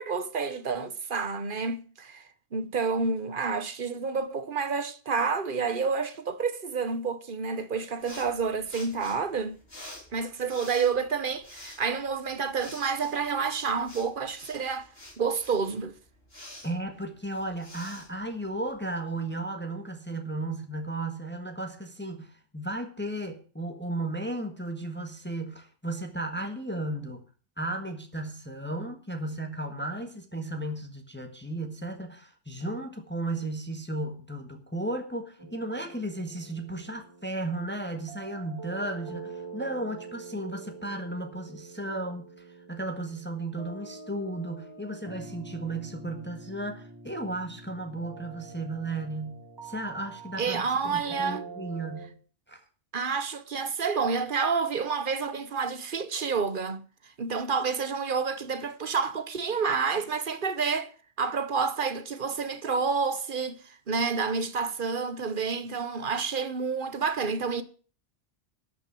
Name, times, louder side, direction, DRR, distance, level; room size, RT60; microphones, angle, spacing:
voice 1, 0.0-2.2 2.5-9.6 10.1-14.9 15.2-15.9 50.4-51.4 52.9-56.8 57.2-60.9 61.2-63.6 63.9-67.6, right 5 dB, 50° right, 1.1 m, -29 dB
sound 1, 8.0-18.9, left 1 dB, 55° left, 5.1 m, -49 dB
voice 2, 16.6-27.2 27.6-52.2 52.5-52.6, right 2 dB, 10° left, 1.5 m, -35 dB
sound 2, 35.4-52.1, right 4 dB, 20° right, 2.1 m, -45 dB
12.5 x 6.2 x 8.4 m
omnidirectional pair, 1.2 m